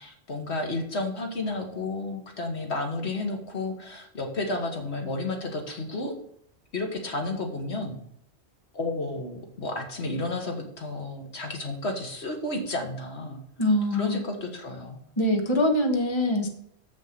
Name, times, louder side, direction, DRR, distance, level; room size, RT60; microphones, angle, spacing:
voice 1, 0.0-6.2 6.7-8.0 8.7-13.4 13.9-15.0, left 2 dB, 70° left, 3 dB, 1.8 m, -32 dB
voice 2, 13.6-14.2 15.2-16.5, left 1 dB, 25° left, 3 dB, 1.3 m, -23 dB
7.5 x 6.2 x 6.7 m, 0.70 s
omnidirectional pair, 1.2 m